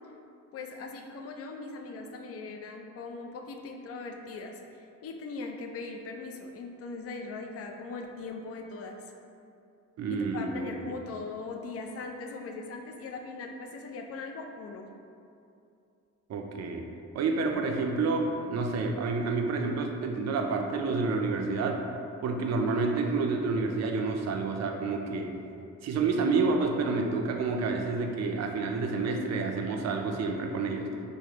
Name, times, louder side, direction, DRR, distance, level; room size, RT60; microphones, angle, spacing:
voice 1, 0.5-4.6 5.0-9.0 10.1-14.9 25.4-25.5, left 3 dB, 45° left, 3 dB, 0.4 m, -40 dB
voice 2, 10.0-11.0 16.3-16.9 17.1-21.8 22.2-25.3 25.8-30.9, right 4 dB, 50° right, 3 dB, 0.5 m, -29 dB
4.7 x 2.1 x 2.8 m, 2.6 s
cardioid pair, 85°, 33 cm